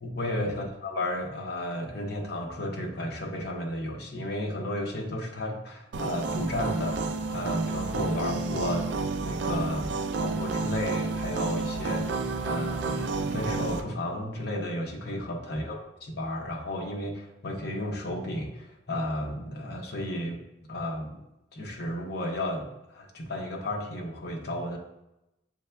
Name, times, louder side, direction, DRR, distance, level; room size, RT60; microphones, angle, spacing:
voice 1, 0.0-7.0 7.3-8.9 9.2-12.2 12.4-15.7 16.0-20.4 20.7-21.2 21.5-24.8, left 1 dB, 55° left, 1 dB, 0.8 m, -33 dB
sound 1, 5.9-13.8, right 3 dB, 65° right, 0.4 m, -30 dB
7.2 x 3.3 x 2.2 m, 0.91 s
head